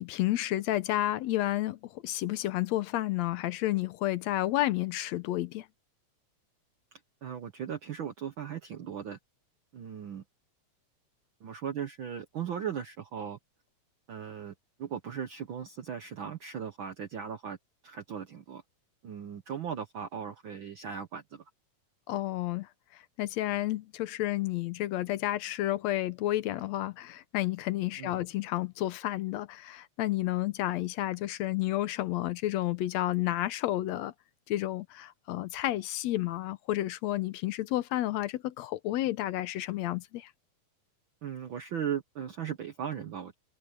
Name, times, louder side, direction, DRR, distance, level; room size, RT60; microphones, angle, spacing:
voice 1, 0.0-5.7 22.1-22.7 23.2-34.1 34.5-40.3, left 15 dB, 75° left, 1.9 m, -31 dB
voice 2, 7.2-9.2 9.7-10.2 11.4-13.4 14.1-14.5 14.8-17.6 17.8-18.6 19.0-21.4 28.0-28.2 41.2-43.3, right 8 dB, 65° right, 1.3 m, -37 dB
open air
omnidirectional pair, 3.4 m